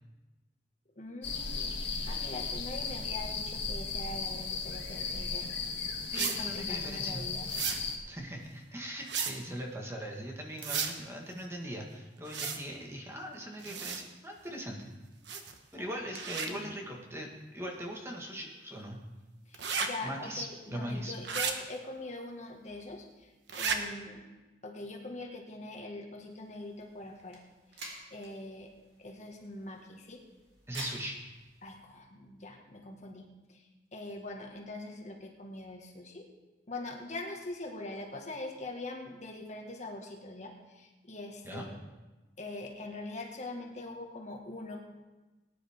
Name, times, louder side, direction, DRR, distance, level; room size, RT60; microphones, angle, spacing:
voice 1, 0.9-5.6 6.1-7.5 16.4-16.7 19.5-24.2 24.6-27.4 27.7-28.7 29.0-30.2 31.6-36.3 36.7-41.8 42.4-44.8, left 2 dB, 40° left, 1 dB, 1.7 m, -43 dB
sound 1, 1.2-8.0, left 5 dB, 85° left, 1.7 m, -36 dB
voice 2, 6.1-7.3 8.1-14.9 15.7-19.0 20.0-21.1 30.7-31.2 41.4-41.7, equal, 15° right, 0 dB, 1.6 m, -40 dB
sound 2, 6.1-6.4 7.5-7.8 9.0-9.3 10.6-10.9 12.3-12.6 13.6-14.0 15.3-15.6 16.1-16.5 19.5-19.9 21.2-21.5 23.5-23.8, right 6 dB, 90° right, 1.2 m, -33 dB
sound 3, 26.3-31.7, right 2 dB, 70° right, 2.7 m, -49 dB
20.0 x 10.0 x 3.6 m, 1.1 s
head